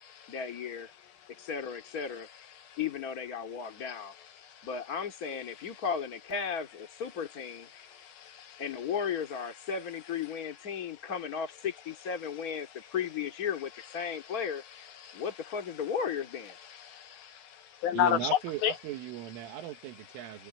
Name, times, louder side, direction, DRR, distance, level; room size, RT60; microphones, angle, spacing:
voice 1, 0.3-0.9 1.4-2.3 2.8-4.1 4.6-7.7 8.6-14.6 15.1-16.6, left 7 dB, 30° left, 2.0 m, -35 dB
voice 2, 7.7-8.6 15.0-15.2 16.7-17.6 17.8-18.3 18.6-18.7, left 10 dB, 80° left, 2.1 m, -32 dB
voice 3, 17.9-20.5, right 14 dB, 90° right, 4.1 m, -38 dB
omnidirectional pair, 5.5 m